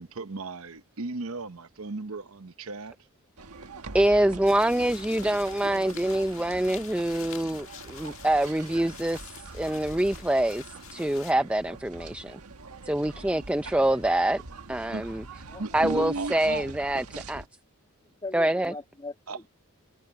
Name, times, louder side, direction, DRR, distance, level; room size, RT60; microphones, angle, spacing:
voice 1, 0.0-2.9 13.1-13.4 14.9-15.1 15.6-16.3 19.3-19.4, right 3 dB, 70° right, 0.9 m, -36 dB
sound 1, 3.4-17.5, right 3 dB, 85° right, 1.5 m, -41 dB
voice 2, 3.9-12.4 12.9-14.4 14.7-15.2 15.7-17.4 18.3-18.7, right 1 dB, 5° right, 0.4 m, -25 dB
sound 2, 4.5-11.3, left 10 dB, 60° left, 1.8 m, -47 dB
voice 3, 15.5-16.1 18.2-19.5, left 2 dB, 20° left, 1.9 m, -40 dB
head